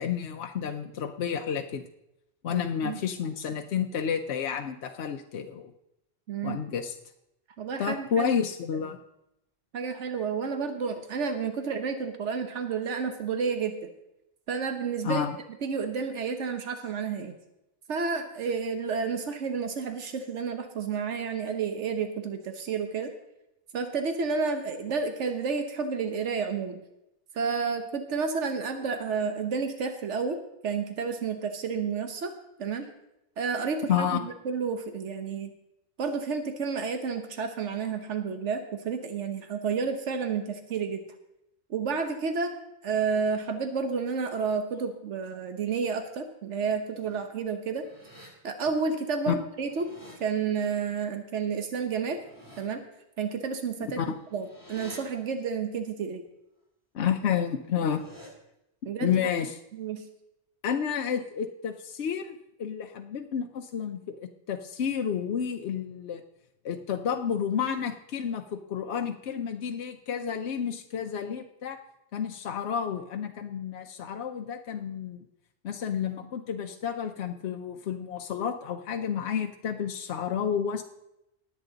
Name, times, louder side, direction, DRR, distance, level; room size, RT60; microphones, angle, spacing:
voice 1, 0.0-1.8 2.4-5.7 6.4-7.0 7.8-9.0 15.0-15.4 33.9-34.2 49.3-49.4 54.0-54.1 56.9-58.0 59.0-59.6 60.6-66.2 66.6-71.8 72.1-75.2 75.6-80.8, left 8 dB, 70° left, 5 dB, 1.0 m, -30 dB
voice 2, 2.5-3.0 6.3-6.6 7.6-8.3 9.7-13.8 14.5-15.2 15.6-17.3 17.9-23.1 23.7-26.8 27.3-32.3 32.6-32.9 33.4-35.5 36.0-41.0 41.7-42.6 42.8-47.9 48.4-49.9 50.2-52.2 52.6-52.8 53.2-54.0 54.3-56.2 58.8-59.1 59.7-60.0, right 5 dB, 85° right, 7 dB, 1.3 m, -30 dB
sound 1, 46.7-47.2 47.7-48.3 49.4-50.2 52.0-52.6 53.9-55.0 57.5-58.3, equal, 15° right, 3.0 m, -51 dB
19.5 x 8.3 x 3.9 m, 0.87 s
omnidirectional pair, 1.2 m